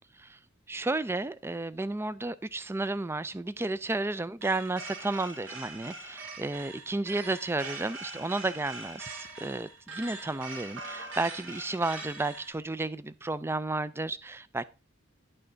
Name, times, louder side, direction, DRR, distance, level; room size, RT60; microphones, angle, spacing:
voice 1, 0.7-14.6, right 2 dB, 10° right, 0.3 m, -32 dB
sound 1, 4.4-12.5, right 3 dB, 70° right, 1.9 m, -42 dB
11.0 x 5.6 x 3.9 m
head